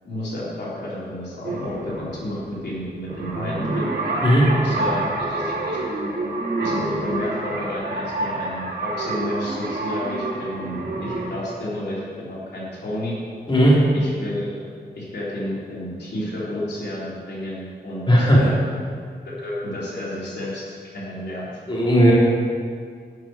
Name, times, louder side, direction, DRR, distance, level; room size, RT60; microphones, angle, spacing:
voice 1, 0.0-3.9 4.5-5.8 6.6-13.2 13.9-14.6 15.0-18.7 19.2-21.5, left 1 dB, 80° left, -7 dB, 3.4 m, -31 dB
sound 1, 1.4-11.3, right 2 dB, 90° right, 2.7 m, -28 dB
voice 2, 13.5-13.8 18.1-18.5 21.7-22.1, equal, 25° left, -7 dB, 3.6 m, -15 dB
12.0 x 6.3 x 9.1 m, 2.1 s
wide cardioid pair, 135°, 17 cm